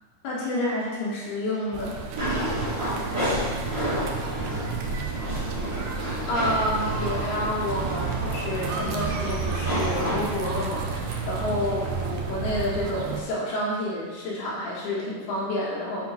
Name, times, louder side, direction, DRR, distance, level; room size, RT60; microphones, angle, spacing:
voice 1, 0.2-2.0 6.3-16.1, left 1 dB, 75° left, -6 dB, 3.5 m, -29 dB
sound 1, 1.7-13.2, right 5 dB, 90° right, 1.9 m, -32 dB
sound 2, 2.1-12.0, equal, 35° right, 1.3 m, -31 dB
voice 2, 2.6-5.4, right 5 dB, 70° right, -5 dB, 2.0 m, -40 dB
7.8 x 3.7 x 4.3 m, 1.4 s
omnidirectional pair, 4.5 m